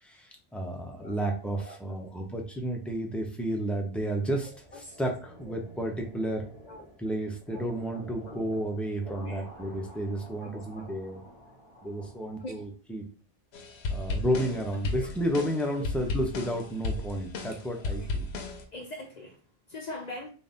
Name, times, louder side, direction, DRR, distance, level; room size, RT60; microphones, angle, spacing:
voice 1, 0.0-4.5 5.0-6.5 7.0-11.2 11.8-13.0 13.9-18.3, right 1 dB, ahead, 2 dB, 0.5 m, -32 dB
voice 2, 1.6-2.0 4.7-5.0 6.6-6.9 7.5-7.7 8.2-8.6 9.1-9.5 10.4-10.9 12.4-12.5 14.8-15.1 17.2-17.6 17.9-18.1 18.7-20.3, left 1 dB, 50° left, 2 dB, 0.6 m, -44 dB
sound 1, 4.0-12.7, equal, 30° right, 0.9 m, -50 dB
sound 2, 13.5-18.6, left 2 dB, 80° left, 0.9 m, -34 dB
4.0 x 2.4 x 3.5 m, 0.38 s
omnidirectional pair, 1.1 m